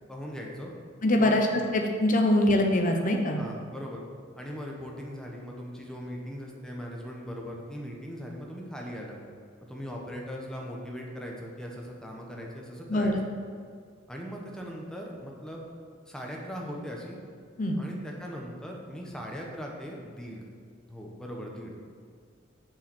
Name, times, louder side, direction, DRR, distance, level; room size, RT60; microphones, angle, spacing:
voice 1, 0.1-0.7 1.2-1.7 3.3-4.0 4.4-9.2 9.7-13.1 14.1-15.7 16.1-17.2 17.8-20.5 20.8-21.8, equal, 5° left, -1 dB, 1.0 m, -39 dB
voice 2, 1.0-3.4 12.9-13.1 17.6-17.8, left 1 dB, 45° left, 2 dB, 0.8 m, -23 dB
7.3 x 4.8 x 6.1 m, 2.1 s
head